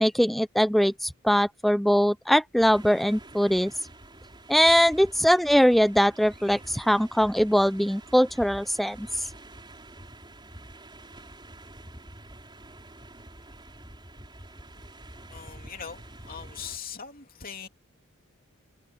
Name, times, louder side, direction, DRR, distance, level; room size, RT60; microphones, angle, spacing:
voice 1, 0.0-3.7 4.5-9.3, equal, ahead, 0.3 m, -22 dB
sound 1, 2.6-16.8, right 1 dB, 20° right, 5.2 m, -47 dB
voice 2, 15.3-17.7, left 7 dB, 45° left, 2.9 m, -41 dB
head